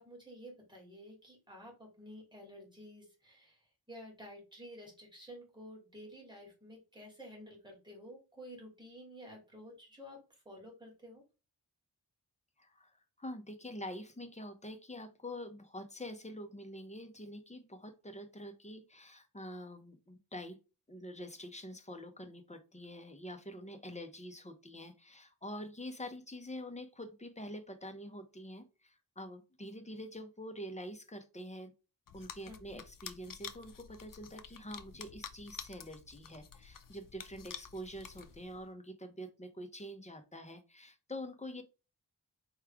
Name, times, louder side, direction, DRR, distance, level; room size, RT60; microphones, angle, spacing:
voice 1, 0.0-3.6 3.9-11.2 32.4-32.8, equal, 10° right, -2 dB, 2.8 m, -51 dB
voice 2, 12.6-12.9 13.2-20.6 20.9-31.7 32.1-41.6, equal, 20° left, 7 dB, 0.8 m, -46 dB
sound 1, 32.1-38.7, left 7 dB, 55° left, 0.6 m, -50 dB
4.7 x 3.2 x 3.5 m, 0.30 s
wide cardioid pair, 90°, 39 cm